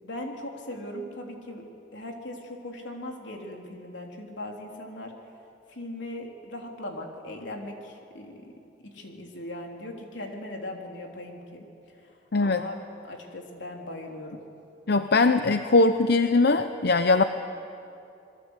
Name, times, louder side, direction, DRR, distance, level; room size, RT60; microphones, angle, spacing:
voice 1, 0.0-1.6 1.9-5.1 5.7-8.5 8.8-11.7 12.0-12.1 12.4-12.8 13.0-14.4, left 1 dB, 85° left, 1 dB, 3.5 m, -39 dB
voice 2, 14.9-17.2, left 3 dB, 60° left, 9 dB, 0.7 m, -21 dB
27.0 x 22.0 x 8.2 m, 2.8 s
head